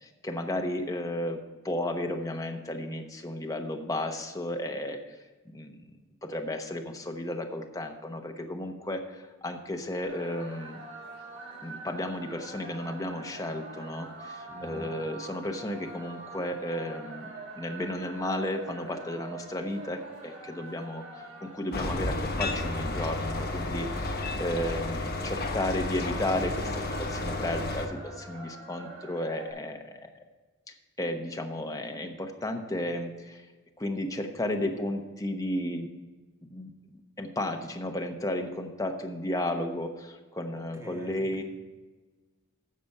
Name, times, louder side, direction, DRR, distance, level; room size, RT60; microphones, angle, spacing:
voice 1, 0.0-5.0 5.5-5.8 6.2-10.8 11.6-17.3 17.5-21.0 21.4-26.8 27.1-30.0 31.0-33.4 33.8-35.9 36.5-36.7 37.2-41.4, left 1 dB, 15° left, 3 dB, 1.0 m, -33 dB
sound 1, 10.0-29.5, right 3 dB, 85° right, 4.0 m, -45 dB
voice 2, 14.5-14.9 40.5-41.4, equal, 15° right, 0 dB, 1.8 m, -45 dB
sound 2, 21.7-27.9, left 2 dB, 50° left, 1.1 m, -32 dB
15.0 x 5.2 x 5.5 m, 1.3 s
head